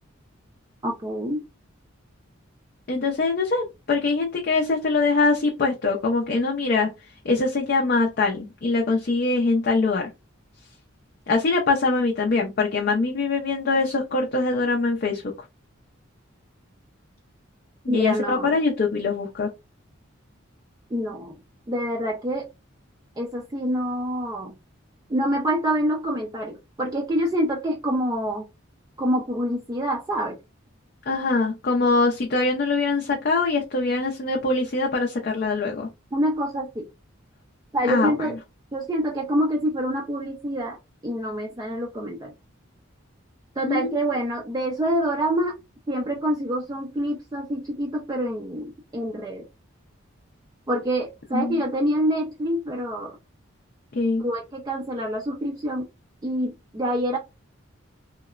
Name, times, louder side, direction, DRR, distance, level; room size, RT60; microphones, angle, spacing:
voice 1, 0.8-1.4 17.9-18.6 20.9-21.4 21.7-22.5 23.2-24.5 25.1-28.5 29.0-30.4 36.1-36.8 37.7-38.4 38.7-40.8 41.0-42.3 43.6-45.5 45.9-49.4 50.7-53.1 54.2-55.9 56.2-57.2, equal, 20° right, 0 dB, 0.4 m, -26 dB
voice 2, 2.9-6.9 7.2-10.1 11.3-15.3 17.8-19.5 31.1-35.9 37.9-38.1 43.6-44.0 51.3-51.6 53.9-54.2, left 3 dB, 45° left, 0 dB, 0.4 m, -23 dB
2.9 x 2.0 x 2.3 m, 0.24 s
head